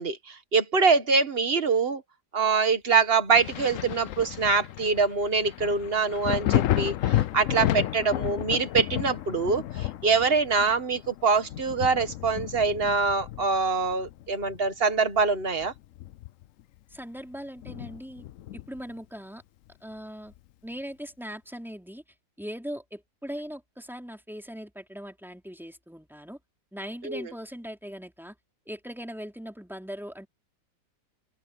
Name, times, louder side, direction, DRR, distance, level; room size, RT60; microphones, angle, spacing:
voice 1, 0.0-2.0 2.3-15.7 27.0-27.2, right 4 dB, 30° right, 1.7 m, -24 dB
Thunder, 3.3-14.7 15.1-16.6 16.9-17.0 17.6-18.9 20.3-20.4, left 13 dB, 85° left, 0.7 m, -32 dB
voice 2, 16.9-18.2 18.5-19.4 19.8-20.3 20.6-22.0 22.4-26.4 26.7-28.4 28.7-30.3, equal, ahead, 3.6 m, -40 dB
open air
omnidirectional pair, 2.0 m